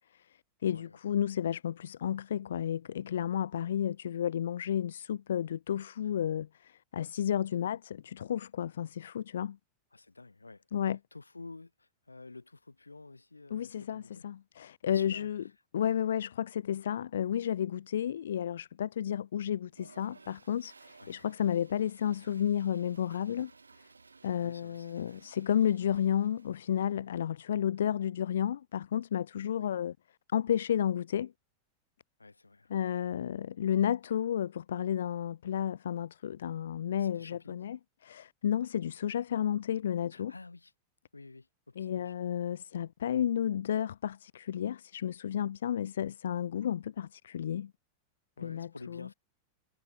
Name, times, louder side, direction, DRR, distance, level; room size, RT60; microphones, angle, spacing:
voice 1, 0.1-9.6 10.7-11.0 13.5-15.4 15.7-23.5 24.2-29.9 30.3-31.3 32.7-37.8 38.0-40.3 41.8-47.7 48.4-49.1, left 9 dB, 65° left, 0.4 m, -32 dB
voice 2, 0.7-1.0 6.0-6.1 9.9-10.7 11.1-14.3 14.9-15.3 21.0-21.1 24.4-25.2 29.6-29.7 32.2-32.7 37.0-37.6 40.1-40.7 41.1-42.1 48.4-49.1, left 3 dB, 80° left, 4.3 m, -50 dB
Toilet flush, 19.7-27.0, right 4 dB, 80° right, 1.3 m, -58 dB
figure-of-eight pair, 90°, 0 cm